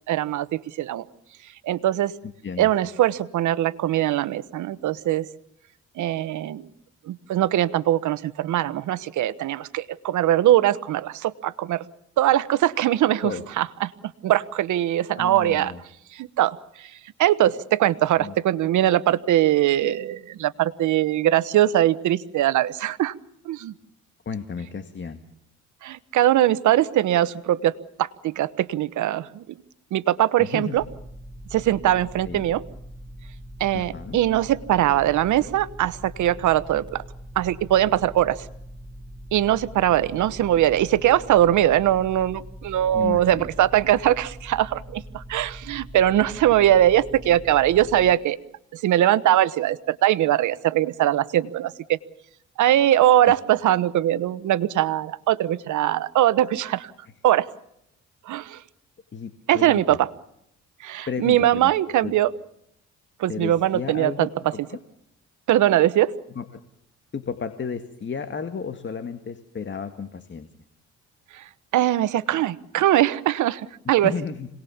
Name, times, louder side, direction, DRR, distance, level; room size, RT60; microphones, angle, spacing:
voice 1, 0.1-1.1 1.6-2.1 2.6-5.3 6.0-6.6 7.1-11.8 12.2-15.7 16.1-23.1 23.4-23.7 25.8-27.7 28.0-29.6 29.9-30.8 31.5-32.6 33.6-37.0 37.3-38.5 39.3-48.4 48.7-52.0 52.6-56.9 57.2-57.5 58.2-58.6 59.5-60.1 60.8-62.3 63.2-64.3 65.5-66.1 71.3-74.1, right 12 dB, 80° right, 16 dB, 1.2 m, -21 dB
voice 2, 2.2-2.7 13.2-13.4 15.2-15.8 18.2-18.3 24.3-25.2 30.4-30.8 32.3-32.5 33.7-34.2 42.9-43.5 53.3-53.4 59.1-60.0 61.1-61.7 62.0-62.1 63.3-64.8 66.4-66.6 67.1-70.5 73.9-74.5, left 6 dB, 40° left, 9 dB, 2.0 m, -33 dB
sound 1, 30.8-48.2, equal, 15° right, 1.3 m, -42 dB
26.5 x 19.5 x 7.2 m, 0.78 s
cardioid pair, 90°, 30 cm